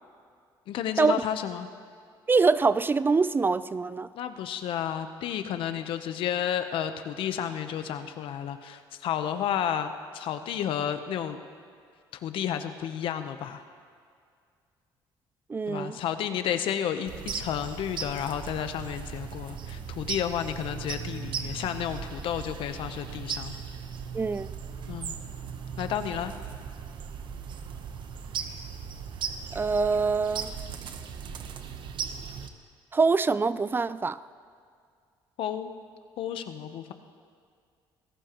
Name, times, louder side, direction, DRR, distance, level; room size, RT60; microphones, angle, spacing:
voice 1, 0.7-1.7 4.1-11.4 12.2-13.6 15.7-23.5 24.9-25.1 25.8-26.3 35.4-35.7 36.2-36.9, left 9 dB, 75° left, 9 dB, 0.9 m, -31 dB
voice 2, 2.3-4.1 15.5-16.0 24.1-24.5 29.5-30.5 32.9-34.2, right 4 dB, 25° right, 16 dB, 0.4 m, -24 dB
sound 1, 17.1-32.5, right 7 dB, 60° right, 1.0 m, -38 dB
25.0 x 17.0 x 3.0 m, 2.2 s
cardioid pair, 95°, 9 cm